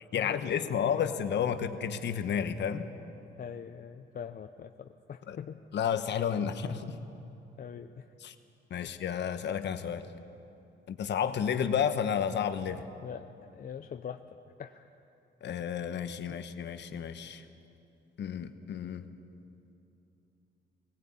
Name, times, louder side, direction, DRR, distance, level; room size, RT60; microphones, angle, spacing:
voice 1, 0.1-2.8 5.3-5.4 5.7-7.0 8.2-8.3 8.7-10.0 10.9-12.8 15.4-17.4 18.2-19.1, left 8 dB, 60° left, 9 dB, 1.2 m, -31 dB
voice 2, 3.4-5.6 7.6-8.0 11.4-11.5 13.0-13.3 13.5-14.2 14.6-14.9, left 8 dB, 45° left, 8 dB, 0.7 m, -42 dB
18.5 x 17.0 x 8.6 m, 2.8 s
cardioid pair, 90°, 20 cm